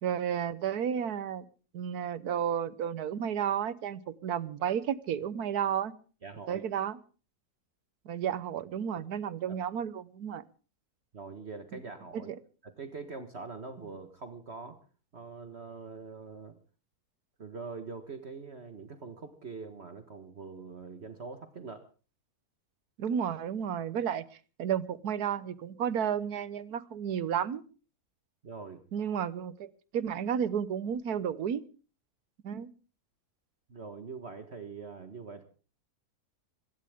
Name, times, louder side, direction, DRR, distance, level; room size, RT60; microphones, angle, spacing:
voice 1, 0.0-1.4 1.7-5.9 6.5-7.0 8.0-10.4 12.1-12.2 23.0-24.2 24.6-27.6 28.9-31.6 32.4-32.7, right 8 dB, 80° right, 17 dB, 1.5 m, -32 dB
voice 2, 6.2-6.6 8.9-9.0 9.5-9.6 11.1-12.3 12.6-14.8 15.1-16.6 17.4-21.8 28.4-28.8 33.7-35.4, right 4 dB, 45° right, 7 dB, 1.7 m, -43 dB
21.5 x 17.0 x 3.6 m, 0.37 s
omnidirectional pair, 1.6 m